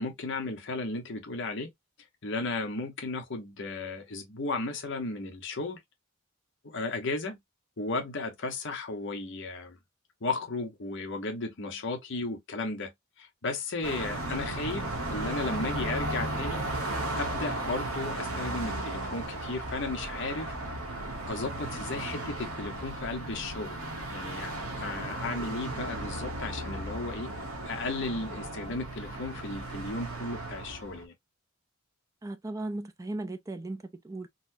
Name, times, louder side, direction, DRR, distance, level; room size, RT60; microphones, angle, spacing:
voice 1, 0.0-1.7 2.2-5.8 6.6-7.4 7.8-9.8 10.2-16.6 17.2-20.5 21.3-23.8 24.1-27.3 27.7-31.1, left 3 dB, 55° left, 0.9 m, -35 dB
Car passing by, 13.8-31.0, right 1 dB, 70° right, 1.0 m, -35 dB
voice 2, 32.2-34.3, right 2 dB, 15° right, 0.4 m, -37 dB
4.0 x 2.1 x 2.6 m
head